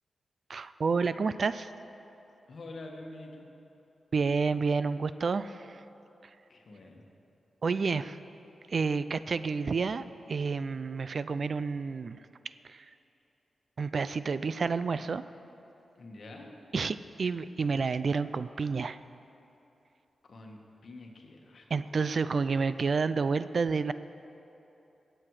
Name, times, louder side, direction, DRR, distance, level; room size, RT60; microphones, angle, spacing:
voice 1, 0.5-1.7 4.1-5.8 7.6-8.2 8.7-12.2 12.6-12.9 13.8-15.2 16.7-19.0 21.7-23.9, right 4 dB, 55° right, 14 dB, 0.3 m, -30 dB
voice 2, 2.4-3.5 6.5-7.0 16.0-16.5 20.2-21.7, left 2 dB, 60° left, 1 dB, 1.5 m, -46 dB
17.5 x 7.8 x 4.8 m, 3.0 s
wide cardioid pair, 95°, 0 cm